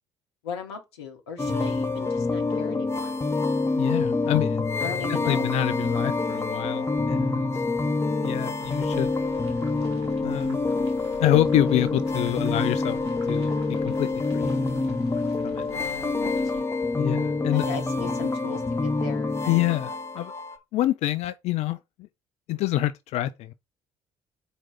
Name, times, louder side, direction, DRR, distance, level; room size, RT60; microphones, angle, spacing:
voice 1, 0.4-3.1 4.8-5.5 15.7-16.8 17.5-19.7, left 5 dB, 80° left, 1.1 m, -38 dB
sound 1, 1.4-20.6, left 3 dB, 20° left, 1.0 m, -26 dB
voice 2, 3.8-4.6 5.2-7.6 8.2-9.1 10.2-10.6 11.2-13.0 13.3-13.5 13.8-14.5 15.4-15.7 17.0-17.6 19.5-20.3 20.7-22.1 22.5-23.5, left 14 dB, 55° left, 0.4 m, -26 dB
sound 2, 8.6-16.6, right 1 dB, 85° right, 1.3 m, -47 dB
4.5 x 4.0 x 5.7 m
figure-of-eight pair, 50°, 13 cm